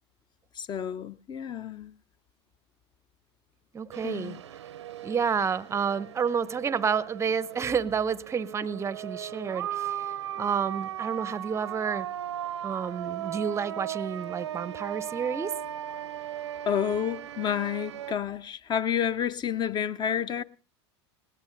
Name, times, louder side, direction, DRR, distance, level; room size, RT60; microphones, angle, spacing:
voice 1, 0.6-1.9 4.0-4.4 16.7-20.4, left 8 dB, 30° left, 0.6 m, -30 dB
voice 2, 3.7-4.4 5.0-12.1 12.6-15.5, right 6 dB, 20° right, 0.6 m, -30 dB
sound 1, 3.9-18.1, right 11 dB, 90° right, 0.6 m, -37 dB
19.5 x 18.0 x 2.6 m
hypercardioid pair, 95°, 14 cm